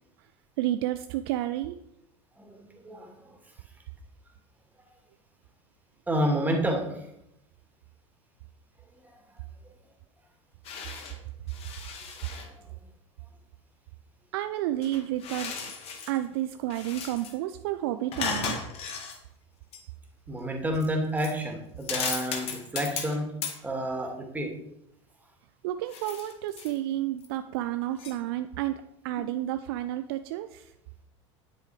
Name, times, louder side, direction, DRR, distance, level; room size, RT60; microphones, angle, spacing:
voice 1, 0.6-1.8 14.3-15.7 16.1-18.6 25.6-30.7, right 14 dB, 55° right, 10 dB, 0.6 m, -31 dB
voice 2, 2.4-3.4 6.1-7.0 20.3-23.3 23.6-24.5, equal, 10° right, 2 dB, 2.7 m, -29 dB
sound 1, 10.6-11.2 11.5-12.5 14.8-16.2 16.6-17.3 18.1-19.2 19.7-19.8 20.7-20.9 21.2-21.4 21.8-23.2 23.4-23.6 25.9-26.8 27.2-27.3 28.0-28.1, left 5 dB, 40° left, 2.3 m, -35 dB
10.0 x 7.7 x 5.2 m, 0.81 s
figure-of-eight pair, 75°, 15 cm